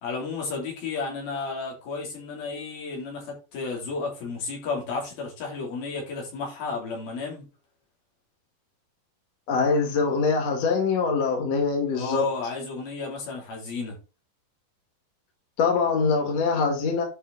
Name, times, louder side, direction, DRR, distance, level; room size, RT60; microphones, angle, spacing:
voice 1, 0.0-7.5 11.9-14.0, left 4 dB, 80° left, 5.7 m, -32 dB
voice 2, 9.5-12.3 15.6-17.0, left 4 dB, 50° left, 3.4 m, -23 dB
11.0 x 5.0 x 4.2 m
omnidirectional pair, 4.2 m